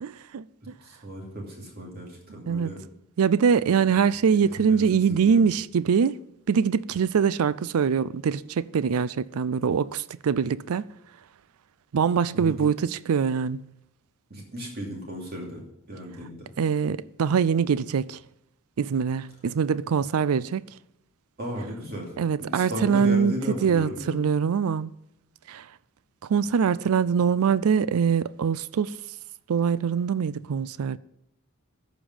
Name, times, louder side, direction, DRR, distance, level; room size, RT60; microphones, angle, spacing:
voice 1, 0.0-0.7 2.5-2.7 3.2-6.2 6.5-10.9 11.9-13.7 16.6-18.2 18.8-20.7 22.2-23.3 23.6-24.9 25.5-25.7 26.3-29.0 29.5-31.0, right 6 dB, 75° right, 0.4 m, -23 dB
voice 2, 0.8-2.8 3.7-4.0 4.4-5.4 12.3-12.7 14.3-16.5 21.4-22.1 22.4-24.2, equal, 45° right, 2.7 m, -35 dB
14.0 x 5.2 x 5.5 m
head